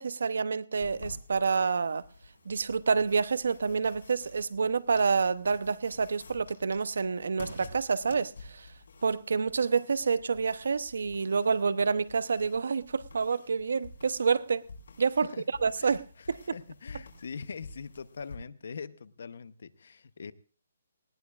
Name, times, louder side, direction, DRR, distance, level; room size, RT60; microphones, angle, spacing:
voice 1, 0.0-2.0 2.5-8.7 9.0-14.6 15.0-15.3 15.6-16.4, right 5 dB, 65° right, 0.7 m, -28 dB
sound 1, 0.8-18.4, left 3 dB, 70° left, 4.7 m, -51 dB
voice 2, 15.8-20.3, left 5 dB, 55° left, 0.7 m, -43 dB
19.5 x 17.5 x 2.4 m
hypercardioid pair, 180°, 0 cm